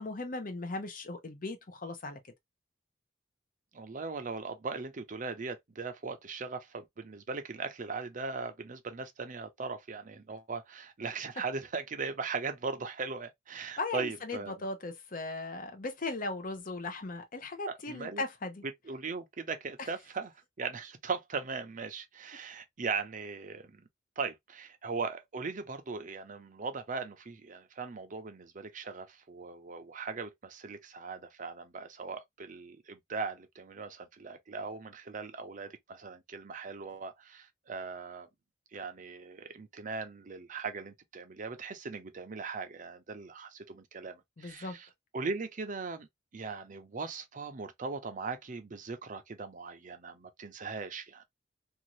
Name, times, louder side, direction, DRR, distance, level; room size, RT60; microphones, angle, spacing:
voice 1, 0.0-2.2 13.8-18.6 19.8-19.9 44.4-44.8, left 2 dB, 45° left, 0.7 m, -37 dB
voice 2, 3.7-14.6 17.7-18.2 18.9-20.3 20.6-23.8 24.2-38.3 38.7-44.9 45.1-46.1 46.3-51.2, right 4 dB, 45° right, 0.6 m, -39 dB
2.6 x 2.5 x 2.9 m
head